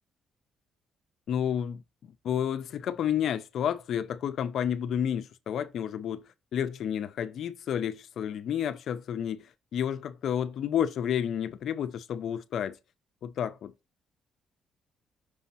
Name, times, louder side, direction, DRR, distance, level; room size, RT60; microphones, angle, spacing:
voice 1, 1.3-1.8 2.2-6.2 6.5-12.8 13.2-13.7, left 9 dB, 70° left, 0.8 m, -30 dB
6.3 x 3.0 x 5.7 m
cardioid pair, 90°, 0 cm